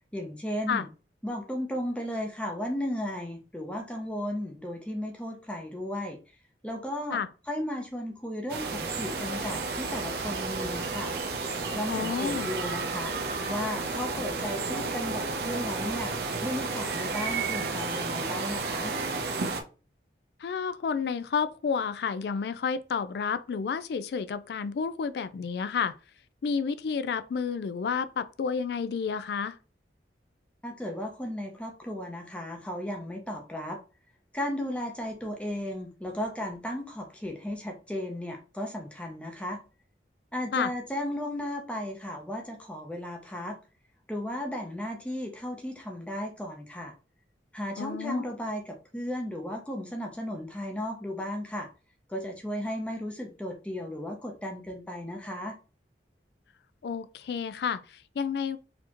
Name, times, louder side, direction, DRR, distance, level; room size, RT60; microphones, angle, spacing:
voice 1, 0.1-0.9 1.2-6.2 6.6-7.2 7.5-11.1 11.7-16.2 16.4-18.9 30.6-33.8 34.3-39.6 40.3-43.6 44.1-46.9 47.5-51.7 52.1-55.6, left 1 dB, 5° left, 0.6 m, -35 dB
sound 1, 8.5-19.6, right 3 dB, 60° right, 0.7 m, -32 dB
voice 2, 11.9-12.5 20.4-25.9 26.4-29.6 40.5-40.7 47.8-48.2 56.8-58.6, left 6 dB, 65° left, 0.3 m, -30 dB
4.1 x 2.8 x 2.9 m
head